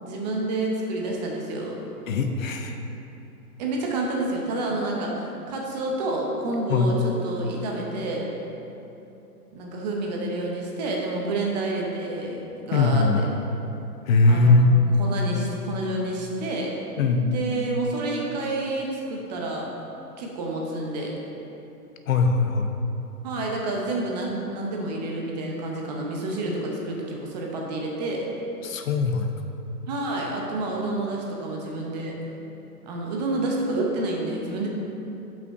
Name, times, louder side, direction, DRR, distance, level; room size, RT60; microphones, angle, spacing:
voice 1, 0.0-1.8 3.6-8.3 9.5-13.2 14.3-14.5 15.0-16.7 17.2-19.7 20.2-21.1 23.2-28.3 29.9-32.2 32.8-34.7, right 2 dB, 25° right, -1 dB, 0.7 m, -29 dB
voice 2, 2.1-2.8 6.7-6.9 12.7-13.2 14.1-14.7 17.0-17.3 22.1-22.7 28.6-29.3, left 3 dB, 60° left, 5 dB, 0.6 m, -20 dB
5.6 x 5.2 x 4.7 m, 2.9 s
hypercardioid pair, 140°, 47 cm